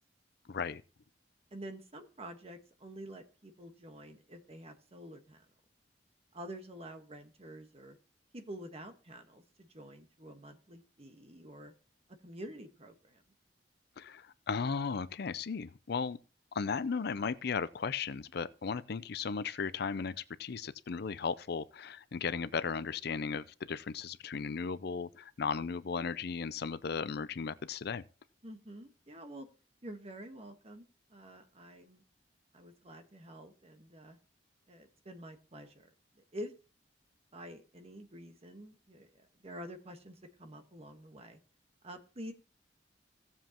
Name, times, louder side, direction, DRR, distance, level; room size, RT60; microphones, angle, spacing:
voice 1, 0.5-0.8 14.0-16.2 16.5-28.0, left 5 dB, 60° left, 0.5 m, -36 dB
voice 2, 1.5-5.4 6.3-8.0 8.3-11.7 12.2-13.2 28.4-29.5 29.8-32.0 32.5-34.2 34.7-35.9 36.1-36.5 37.3-39.1 39.4-41.4 41.8-42.3, equal, 35° right, 1.4 m, -48 dB
16.5 x 7.4 x 3.0 m
head